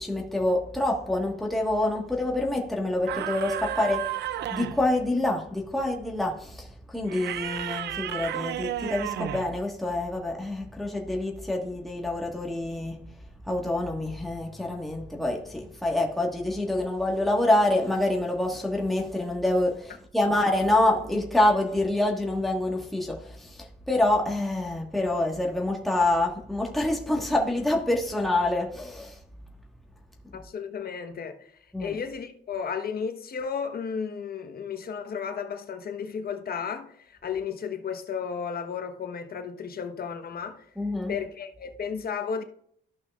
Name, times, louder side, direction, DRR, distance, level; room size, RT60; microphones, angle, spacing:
voice 1, 0.0-13.0 13.5-29.2 31.7-31.9 40.8-41.1, left 1 dB, ahead, 1.5 m, -26 dB
sound 1, 3.1-4.9 7.1-9.6, right 12 dB, 60° right, 0.4 m, -32 dB
voice 2, 30.3-31.5 31.8-40.6 41.1-42.4, left 6 dB, 50° left, 1.1 m, -33 dB
14.0 x 5.6 x 2.4 m
cardioid pair, 90°, 20 cm